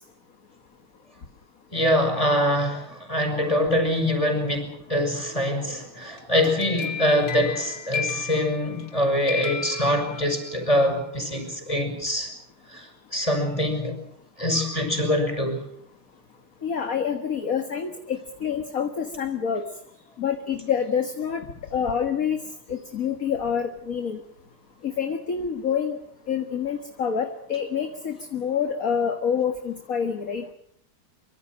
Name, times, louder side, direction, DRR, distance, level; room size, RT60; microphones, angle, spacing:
voice 1, 1.7-12.3 12.7-14.0 14.4-15.6, left 1 dB, 15° left, 6 dB, 5.9 m, -24 dB
sound 1, 6.2-9.0 9.3-10.6, left 7 dB, 60° left, 3.2 m, -33 dB
voice 2, 16.6-19.7 20.2-21.5 21.7-22.4 22.7-24.2 24.8-26.0 26.3-30.4, left 7 dB, 45° left, 6 dB, 1.9 m, -27 dB
24.5 x 24.5 x 6.3 m, 0.71 s
omnidirectional pair, 2.4 m